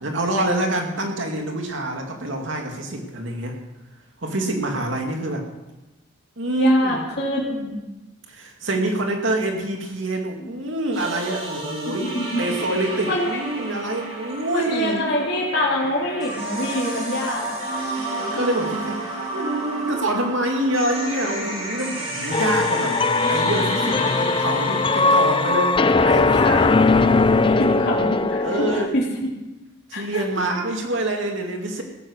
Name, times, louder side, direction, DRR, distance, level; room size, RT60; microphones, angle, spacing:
voice 1, 0.0-3.6 4.2-5.5 6.4-7.0 8.3-15.1 18.1-19.0 19.3-23.0 23.3-26.7 28.4-28.9 29.9-31.8, right 1 dB, 75° right, 2 dB, 2.4 m, -26 dB
voice 2, 6.6-7.8 10.4-10.5 11.9-12.4 13.1-13.3 14.5-17.6 27.4-28.7 28.9-29.3 29.9-30.2, left 1 dB, 50° left, -5 dB, 3.4 m, -25 dB
sound 1, 10.9-25.5, right 2 dB, 35° right, 6.4 m, -31 dB
sound 2, 22.3-28.9, left 3 dB, 25° left, 0.4 m, -19 dB
17.0 x 9.7 x 6.5 m, 1.0 s
head